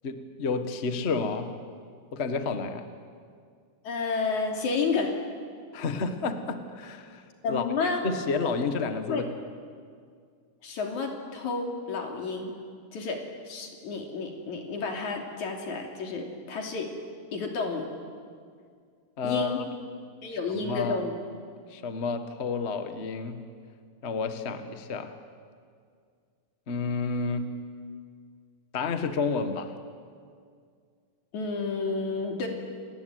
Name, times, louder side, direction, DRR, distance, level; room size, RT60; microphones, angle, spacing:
voice 1, 0.0-1.5 2.1-2.9 5.7-9.3 19.2-19.6 20.5-21.0 21.7-23.4 24.0-25.1 26.7-27.5 28.7-29.7, left 4 dB, 40° left, 8 dB, 0.9 m, -30 dB
voice 2, 3.8-5.2 7.4-8.0 9.1-9.2 10.6-12.5 12.9-13.2 13.5-16.9 17.3-17.9 19.2-19.6 20.2-21.1 31.3-32.5, left 4 dB, 70° left, 3 dB, 4.2 m, -30 dB
29.0 x 19.5 x 9.4 m, 2.1 s
omnidirectional pair, 3.6 m